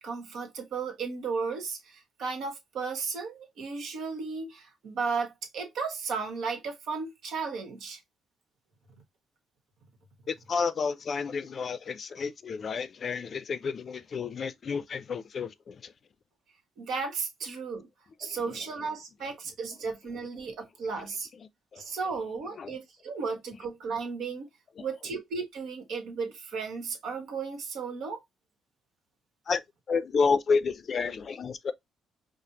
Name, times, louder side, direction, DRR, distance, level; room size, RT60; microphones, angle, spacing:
voice 1, 0.0-8.0 16.8-17.9 18.2-21.3 21.8-24.5 24.8-28.2, right 5 dB, 75° right, 1.2 m, -34 dB
voice 2, 10.3-15.9 18.2-18.4 21.7-21.8 22.6-22.8 24.8-24.9 29.5-29.6 29.9-31.7, left 5 dB, 50° left, 0.4 m, -30 dB
5.0 x 2.1 x 2.8 m
cardioid pair, 90°, 0 cm